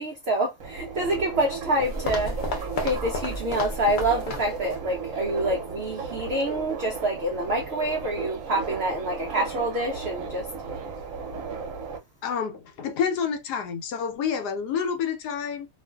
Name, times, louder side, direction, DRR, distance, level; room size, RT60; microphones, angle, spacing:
voice 1, 0.0-10.5, right 1 dB, 80° right, 0.5 m, -27 dB
Subway metro underground, 0.6-12.0, right 5 dB, 65° right, 0.9 m, -35 dB
sound 1, 1.8-4.8 5.1-5.2 5.8-5.9, left 1 dB, 55° left, 0.5 m, -32 dB
voice 2, 12.2-15.7, left 6 dB, 90° left, 1.2 m, -28 dB
2.5 x 2.4 x 2.2 m
omnidirectional pair, 1.7 m